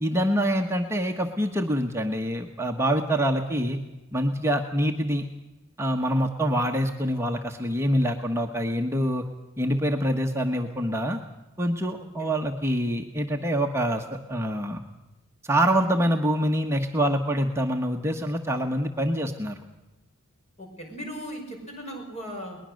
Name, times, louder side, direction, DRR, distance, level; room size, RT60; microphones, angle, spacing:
voice 1, 0.0-3.8 4.1-5.2 5.8-9.2 9.6-11.2 11.6-14.8 15.4-19.6, equal, 10° right, 3 dB, 1.1 m, -25 dB
voice 2, 20.6-22.6, equal, 30° left, 2 dB, 5.6 m, -37 dB
21.0 x 20.5 x 6.4 m, 1.1 s
head